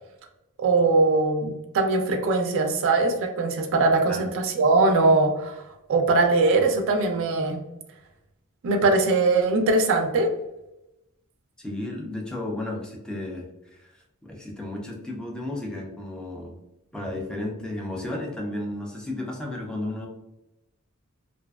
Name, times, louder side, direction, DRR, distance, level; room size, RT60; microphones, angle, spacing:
voice 1, 0.6-5.6 5.9-7.6 8.6-10.3, right 3 dB, 60° right, 4 dB, 0.4 m, -21 dB
voice 2, 11.6-16.6 16.9-20.1, left 1 dB, 5° left, -1 dB, 0.4 m, -33 dB
2.5 x 2.2 x 2.2 m, 0.90 s
head